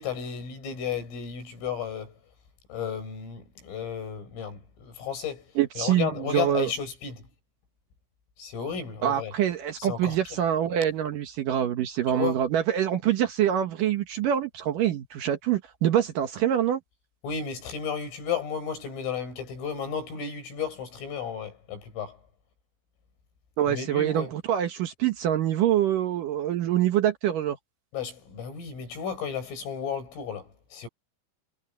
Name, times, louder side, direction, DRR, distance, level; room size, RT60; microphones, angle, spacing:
voice 1, 0.0-2.2 2.7-7.3 8.4-9.3 9.8-10.4 12.1-12.4 17.2-22.2 23.7-24.3 27.9-30.9, left 7 dB, 80° left, 10.0 m, -33 dB
voice 2, 5.6-6.7 9.0-16.8 23.6-27.6, right 10 dB, 80° right, 1.9 m, -25 dB
omnidirectional pair, 5.8 m